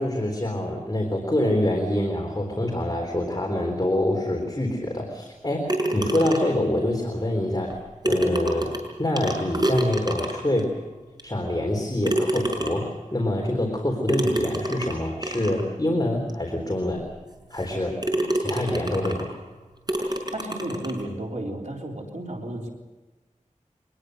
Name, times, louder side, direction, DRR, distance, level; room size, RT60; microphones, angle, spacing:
voice 1, 0.0-10.8 11.2-17.1 17.5-18.1 18.3-19.3, left 1 dB, 30° left, 1 dB, 3.8 m, -26 dB
sound 1, 5.7-6.7 7.7-7.8 8.0-10.6 11.2-11.3 12.0-13.0 14.1-15.6 16.3-16.4 16.9-17.0 17.5-17.7 18.0-19.3 19.9-21.0, right 1 dB, 30° right, 6.1 m, -27 dB
voice 2, 20.3-22.7, right 1 dB, 65° right, 0 dB, 3.7 m, -33 dB
24.0 x 20.5 x 6.5 m, 1.2 s
wide cardioid pair, 55°, 13 cm